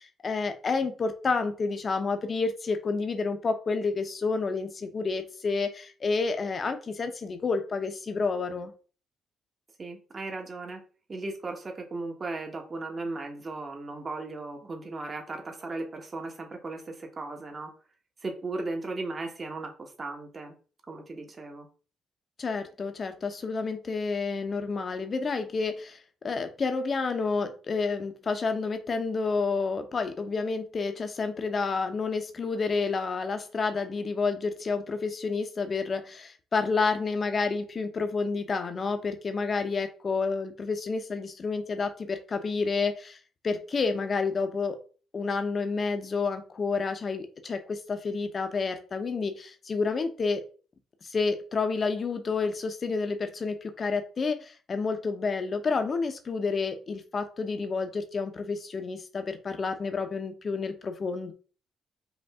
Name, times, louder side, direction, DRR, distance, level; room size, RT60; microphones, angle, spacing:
voice 1, 0.0-8.7 22.4-26.0 26.2-43.2 43.4-44.8 45.1-50.4 51.0-61.3, left 4 dB, 40° left, 7 dB, 0.8 m, -29 dB
voice 2, 9.8-10.8 11.1-17.7 18.2-20.5 20.9-21.7, right 3 dB, 35° right, 3 dB, 1.3 m, -36 dB
5.1 x 2.6 x 3.6 m, 0.38 s
cardioid pair, 90°, 0 cm